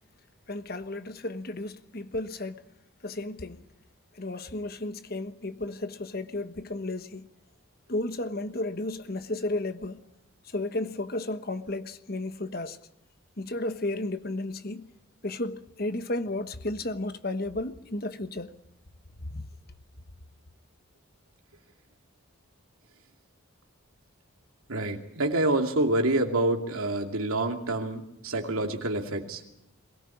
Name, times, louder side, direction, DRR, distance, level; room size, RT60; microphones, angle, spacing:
voice 1, 0.5-2.6 3.0-3.6 4.2-7.3 7.9-10.1 10.5-12.8 13.4-14.9 15.2-18.5 19.3-19.5, left 2 dB, 45° left, 1.3 m, -33 dB
voice 2, 24.7-29.4, right 2 dB, 90° right, 2.7 m, -27 dB
22.5 x 18.0 x 8.6 m
head